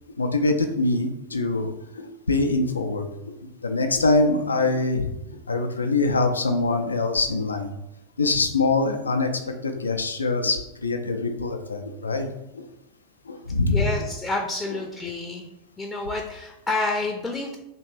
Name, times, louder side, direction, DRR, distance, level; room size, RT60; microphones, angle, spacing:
voice 1, 0.2-3.3 3.6-5.1 5.5-7.7 8.2-12.3 12.5-12.6 13.3-13.9, left 3 dB, 80° left, 5 dB, 0.5 m, -24 dB
voice 2, 13.7-15.5 15.8-17.6, left 2 dB, 10° left, 1 dB, 0.6 m, -29 dB
3.2 x 3.0 x 4.5 m, 0.92 s
figure-of-eight pair, 90°, 0 cm